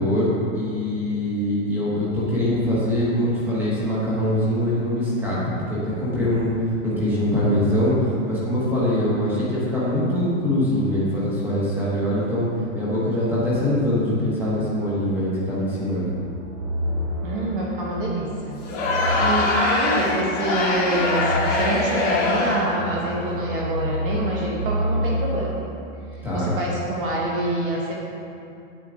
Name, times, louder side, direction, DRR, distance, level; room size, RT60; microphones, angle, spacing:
voice 1, 0.0-5.4 5.7-12.4 12.7-16.1 26.2-26.5, left 1 dB, 5° right, -8 dB, 1.3 m, -23 dB
sound 1, 16.0-25.5, equal, 75° right, 1.4 m, -30 dB
voice 2, 17.2-18.6 19.2-25.6 26.3-27.9, right 1 dB, 40° right, -3 dB, 1.2 m, -26 dB
Crowd, 18.6-22.8, left 2 dB, 20° left, 1.3 m, -23 dB
8.9 x 8.1 x 3.6 m, 2.6 s
supercardioid pair, 175°, 40 cm